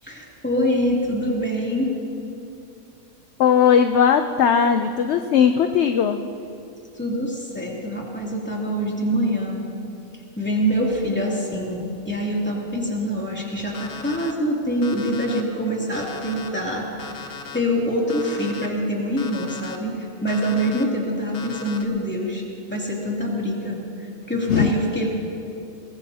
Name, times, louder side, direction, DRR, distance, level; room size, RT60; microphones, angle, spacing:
voice 1, 0.0-1.9 6.9-9.6 10.4-16.9 17.5-22.4 22.7-25.1, equal, 5° left, -4 dB, 2.7 m, -25 dB
voice 2, 3.4-6.2 24.5-24.7, left 7 dB, 60° left, 7 dB, 0.8 m, -18 dB
Alarm, 13.7-14.3 14.8-15.4 15.9-16.5 17.0-17.6 18.1-18.7 19.2-19.8 20.3-20.8 21.3-21.8, left 5 dB, 85° left, 1.5 m, -37 dB
22.0 x 21.5 x 2.8 m, 2.7 s
omnidirectional pair, 1.5 m